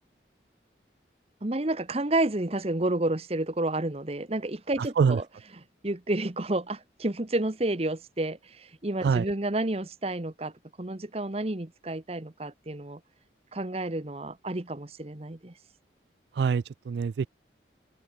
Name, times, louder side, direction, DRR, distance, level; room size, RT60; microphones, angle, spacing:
voice 1, 1.4-5.2 5.8-10.5 10.8-13.0 13.5-15.5, right 2 dB, 35° right, 1.1 m, -30 dB
voice 2, 4.8-5.2 9.0-9.3 16.3-17.3, right 6 dB, 65° right, 0.3 m, -25 dB
head